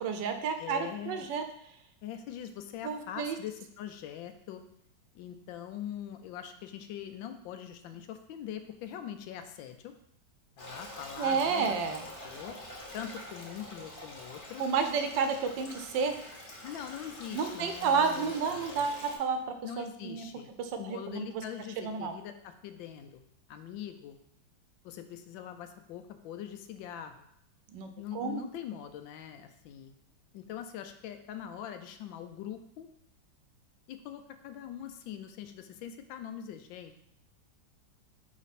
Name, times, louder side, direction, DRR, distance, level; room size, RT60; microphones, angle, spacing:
voice 1, 0.0-1.4 2.8-3.4 11.2-12.0 14.6-16.2 17.3-20.3 20.6-21.4 21.8-22.1 27.7-28.4, right 5 dB, 75° right, 7 dB, 1.2 m, -31 dB
voice 2, 0.6-1.3 2.0-4.6 5.1-9.9 10.6-12.6 12.9-14.6 16.6-18.9 19.6-20.5 20.8-23.2 23.5-24.2 24.8-27.3 28.0-29.9 30.3-32.9 33.9-37.0, left 9 dB, 80° left, 8 dB, 1.3 m, -42 dB
Stream, 10.6-19.2, left 1 dB, 35° left, 0.9 m, -46 dB
5.1 x 5.1 x 4.1 m, 0.73 s
omnidirectional pair, 2.1 m